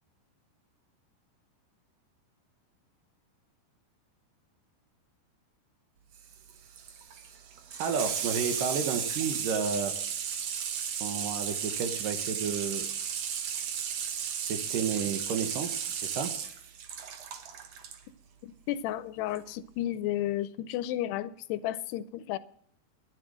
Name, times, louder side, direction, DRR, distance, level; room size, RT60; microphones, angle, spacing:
Water tap faucet / Sink (filling or washing), 6.1-18.0 19.3-19.4, right 8 dB, 85° right, 1.4 m, -34 dB
voice 1, 7.8-10.0 11.0-12.9 14.5-16.3, right 6 dB, 65° right, 6 dB, 2.3 m, -32 dB
voice 2, 18.4-22.4, left 13 dB, 80° left, 14 dB, 2.7 m, -33 dB
12.0 x 10.5 x 6.2 m, 0.63 s
omnidirectional pair, 4.8 m